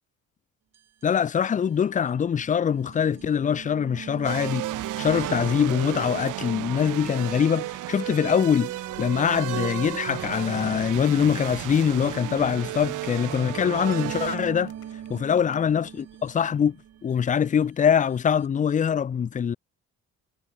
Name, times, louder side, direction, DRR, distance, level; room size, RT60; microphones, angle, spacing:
sound 1, 0.7-0.8 1.0-1.1 2.0-17.2 18.2-18.3 18.4-18.5, right 10 dB, 55° right, 1.7 m, -39 dB
voice 1, 1.0-4.6 5.0-8.7 9.0-14.7 15.1-16.8 17.0-19.6, left 7 dB, 25° left, 0.4 m, -23 dB
sound 2, 4.2-14.4, right 17 dB, 85° right, 0.8 m, -34 dB
sound 3, 5.3-6.5 6.9-11.4 11.6-11.9 13.3-15.6, left 14 dB, 80° left, 2.8 m, -58 dB
cardioid pair, 90°, 30 cm